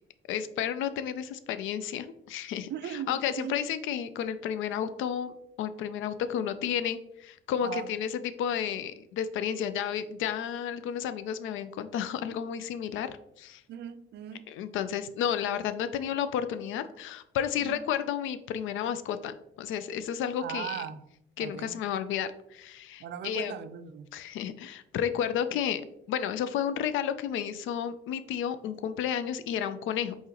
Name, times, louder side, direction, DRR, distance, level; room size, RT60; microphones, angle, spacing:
voice 1, 0.3-13.6 14.5-20.8 21.4-23.6 24.1-25.8 26.1-30.2, left 9 dB, 85° left, 0.4 m, -32 dB
voice 2, 2.7-3.5 7.6-7.9 13.7-14.5 17.6-17.8 20.4-21.0 21.4-21.8 23.0-24.1, right 9 dB, 60° right, 0.4 m, -38 dB
4.1 x 3.7 x 2.9 m
cardioid pair, 90°, 20 cm